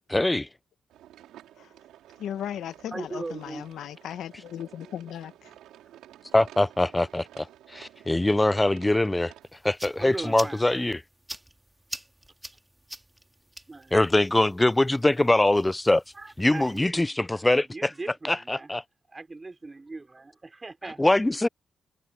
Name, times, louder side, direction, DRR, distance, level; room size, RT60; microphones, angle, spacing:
voice 1, 0.1-0.5 6.3-9.3 9.6-11.0 13.9-16.0 16.4-17.9 18.2-18.8 21.0-21.5, left 1 dB, 15° left, 0.5 m, -23 dB
sound 1, 0.9-9.5, right 12 dB, 85° right, 5.1 m, -52 dB
voice 2, 2.2-5.5, left 10 dB, 80° left, 1.2 m, -37 dB
voice 3, 2.9-3.6 10.0-11.0 13.7-14.0 15.1-15.2 16.2-17.2 17.7-18.7 19.1-21.0, right 3 dB, 30° right, 5.4 m, -39 dB
sound 2, 9.4-16.8, right 1 dB, 10° right, 2.3 m, -45 dB
supercardioid pair, 55°, 0 cm